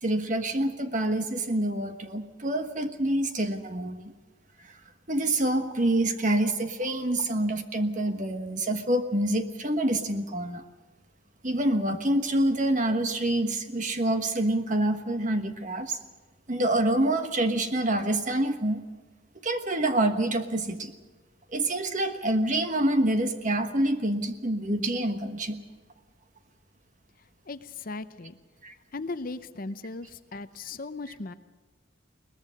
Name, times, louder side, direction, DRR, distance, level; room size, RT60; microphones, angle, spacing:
voice 1, 0.0-4.1 4.6-4.8 5.1-10.6 11.4-16.0 16.5-18.8 19.4-20.9 21.5-25.6 28.6-28.7, right 1 dB, 40° right, 7 dB, 1.3 m, -27 dB
voice 2, 27.5-28.4 28.9-31.3, left 3 dB, 45° left, 11 dB, 0.7 m, -37 dB
22.0 x 19.5 x 6.5 m, 1.3 s
head